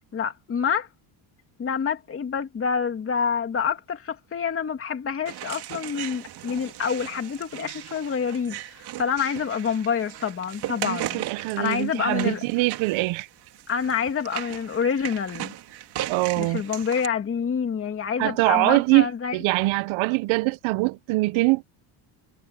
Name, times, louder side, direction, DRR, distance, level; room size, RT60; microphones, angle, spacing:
voice 1, 0.1-0.9 1.6-11.2 11.6-12.4 13.7-15.5 16.4-19.4, left 6 dB, 25° left, 2.6 m, -27 dB
sound 1, 5.2-17.1, right 13 dB, 50° right, 2.1 m, -37 dB
voice 2, 10.8-13.3 16.1-16.6 18.2-21.6, right 22 dB, 70° right, 0.8 m, -23 dB
cardioid pair, 160°, 49 cm